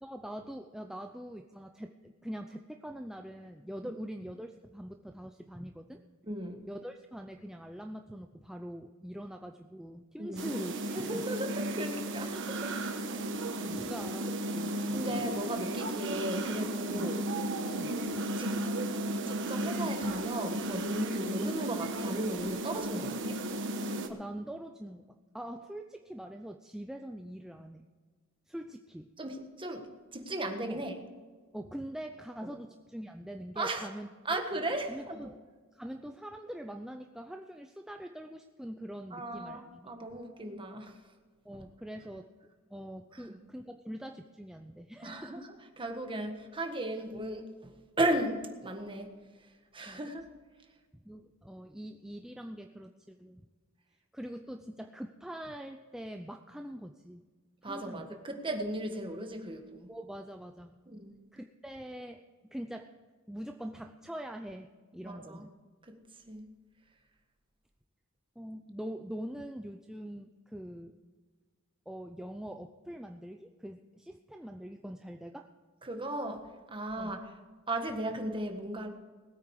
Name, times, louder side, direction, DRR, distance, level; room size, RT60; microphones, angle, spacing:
voice 1, 0.0-6.0 6.7-11.2 13.1-14.8 16.9-17.1 17.7-18.0 24.1-27.9 28.5-29.1 30.7-30.8 31.5-34.4 34.9-35.4 35.7-39.9 41.4-42.3 42.7-45.4 49.9-50.1 50.9-53.4 54.1-57.3 57.6-58.2 59.9-60.8 61.3-62.2 62.5-62.9 63.3-65.5 68.4-71.0 71.9-75.5 77.0-77.2, equal, 5° right, 4 dB, 0.5 m, -43 dB
voice 2, 6.2-6.7 10.2-10.5 10.9-12.8 13.5-13.6 14.9-17.2 18.4-18.6 19.3-23.4 29.2-31.0 33.5-33.9 34.2-35.2 39.1-41.0 41.5-41.6 43.1-43.4 45.0-49.2 49.7-50.2 57.6-59.9 60.9-61.2 65.0-65.5 65.8-66.0 66.3-66.5 75.8-77.2 77.7-78.9, right 1 dB, 25° right, 4 dB, 1.6 m, -36 dB
sound 1, 10.4-24.1, right 1 dB, 60° right, 1.3 m, -34 dB
20.0 x 8.8 x 4.8 m, 1.5 s
head